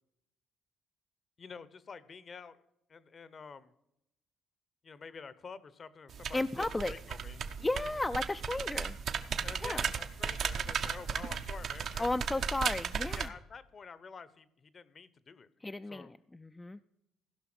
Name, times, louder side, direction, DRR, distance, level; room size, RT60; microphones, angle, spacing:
voice 1, 1.4-2.6 2.9-3.7 4.8-7.4 9.4-12.1 13.1-15.5 15.9-16.1, left 5 dB, 40° left, 17 dB, 0.8 m, -48 dB
sound 1, 6.1-13.3, right 6 dB, 60° right, 0.8 m, -36 dB
voice 2, 6.3-6.9 7.6-9.0 9.6-9.9 12.0-13.3 15.6-16.8, left 2 dB, 15° left, 8 dB, 0.4 m, -34 dB
15.5 x 5.7 x 6.0 m, 0.82 s
cardioid pair, 85°, 0 cm